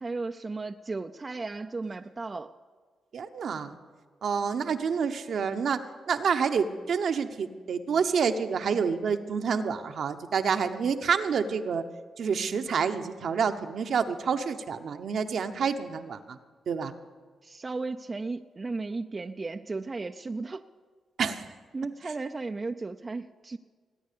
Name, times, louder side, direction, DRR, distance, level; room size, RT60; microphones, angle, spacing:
voice 1, 0.0-2.5 17.4-20.6 21.7-23.6, right 3 dB, 35° right, 7 dB, 0.5 m, -35 dB
voice 2, 3.1-3.8 4.2-5.8 6.1-11.8 12.2-16.4 16.7-16.9 21.2-21.4, right 6 dB, 65° right, 7 dB, 0.9 m, -28 dB
19.0 x 9.5 x 6.8 m, 1.5 s
supercardioid pair, 45°, 0 cm